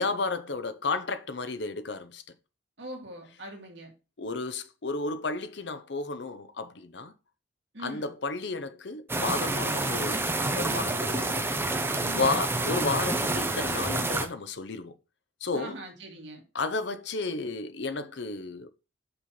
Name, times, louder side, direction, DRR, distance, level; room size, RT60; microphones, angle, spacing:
voice 1, 0.0-2.2 4.2-7.1 7.8-11.5 12.2-14.9 15.4-15.8 16.5-18.7, left 3 dB, 60° left, 0.7 m, -32 dB
voice 2, 2.8-3.9 7.7-8.1 12.0-12.3 15.5-16.4, right 1 dB, 65° right, 2.0 m, -42 dB
sound 1, 9.1-14.3, right 2 dB, 10° right, 0.7 m, -28 dB
5.6 x 5.5 x 4.2 m
head